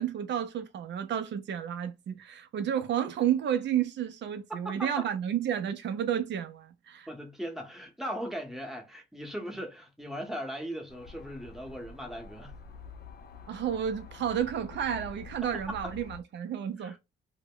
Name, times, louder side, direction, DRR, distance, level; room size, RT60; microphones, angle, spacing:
voice 1, 0.0-7.1 13.5-17.0, right 9 dB, 65° right, 0.6 m, -31 dB
voice 2, 4.6-5.1 7.1-12.5 15.4-15.9 16.8-17.0, equal, ahead, 0.9 m, -38 dB
sound 1, 10.9-16.2, left 5 dB, 50° left, 0.6 m, -47 dB
2.1 x 2.1 x 3.6 m
cardioid pair, 90°, 20 cm